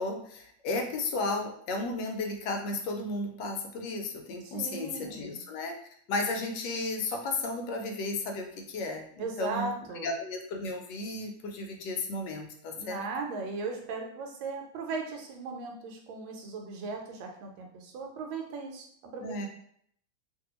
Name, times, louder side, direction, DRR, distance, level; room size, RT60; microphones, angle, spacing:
voice 1, 0.0-5.8 6.1-9.7 10.0-13.0 19.2-19.5, left 2 dB, 75° left, 3 dB, 1.1 m, -34 dB
voice 2, 4.4-5.4 9.2-10.1 12.8-19.5, right 4 dB, 85° right, 2 dB, 1.4 m, -37 dB
2.9 x 2.7 x 2.9 m, 0.65 s
omnidirectional pair, 2.1 m